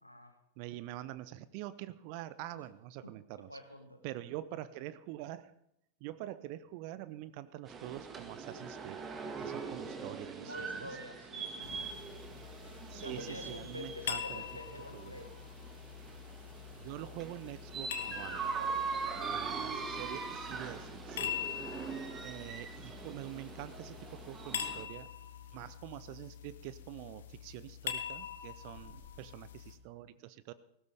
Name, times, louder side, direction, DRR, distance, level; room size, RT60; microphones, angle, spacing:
voice 1, 0.0-0.3 2.5-2.6 3.0-4.0 9.4-9.7 10.4-12.1 12.9-15.3 18.2-19.3 21.4-21.7 28.6-28.9, left 1 dB, 90° left, 7 dB, 1.7 m, -49 dB
voice 2, 0.6-3.5 4.0-5.5 6.0-9.0 9.4-10.9 12.8-14.4 14.9-15.1 16.8-18.5 19.3-21.4 22.2-25.1 25.5-30.5, right 14 dB, 45° right, 16 dB, 0.6 m, -45 dB
sound 1, 7.7-24.9, right 5 dB, 25° right, 1.9 m, -42 dB
sound 2, 11.6-29.8, left 9 dB, 60° left, 1.2 m, -44 dB
18.5 x 15.5 x 3.6 m, 0.78 s
figure-of-eight pair, 90°, 0 cm